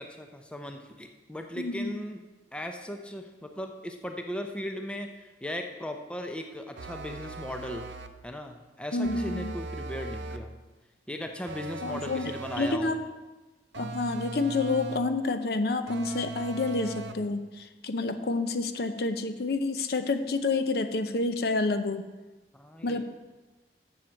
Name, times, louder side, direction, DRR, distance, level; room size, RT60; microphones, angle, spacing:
voice 1, 0.0-2.2 2.5-7.8 8.2-10.5 11.1-13.0 22.5-23.0, equal, 5° left, 4 dB, 0.6 m, -37 dB
voice 2, 1.6-2.0 8.9-9.5 11.8-13.0 13.8-22.0 22.8-23.0, left 3 dB, 60° left, 9 dB, 0.6 m, -29 dB
sound 1, 6.8-8.2 9.0-10.5 11.5-12.9 13.7-15.2 15.9-17.3, right 3 dB, 80° right, 0.6 m, -39 dB
7.4 x 7.3 x 6.4 m, 1.2 s
head